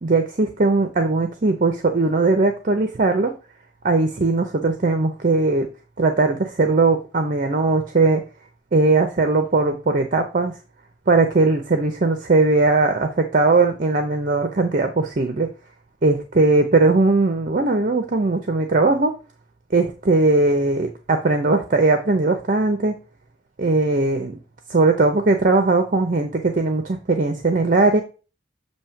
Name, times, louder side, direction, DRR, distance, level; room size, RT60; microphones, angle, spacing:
voice 1, 0.0-3.3 3.8-5.7 6.0-8.2 8.7-10.6 11.1-15.5 16.0-19.1 19.7-23.0 23.6-24.4 24.7-28.0, right 3 dB, 45° right, 6 dB, 0.7 m, -19 dB
7.4 x 2.8 x 5.6 m, 0.33 s
head